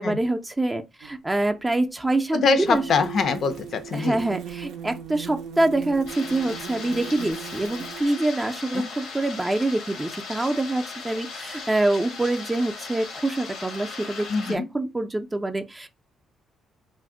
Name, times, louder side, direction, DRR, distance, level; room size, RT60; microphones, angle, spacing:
voice 1, 0.0-2.8 3.9-15.9, right 2 dB, 15° right, 0.4 m, -25 dB
sound 1, 1.0-1.1 2.6-8.0, right 8 dB, 85° right, 0.5 m, -38 dB
voice 2, 2.3-4.2 8.7-8.9 14.3-14.7, left 4 dB, 60° left, 0.4 m, -24 dB
sound 2, 6.1-14.6, left 4 dB, 90° left, 0.7 m, -38 dB
2.5 x 2.1 x 3.6 m
cardioid pair, 90°, 0 cm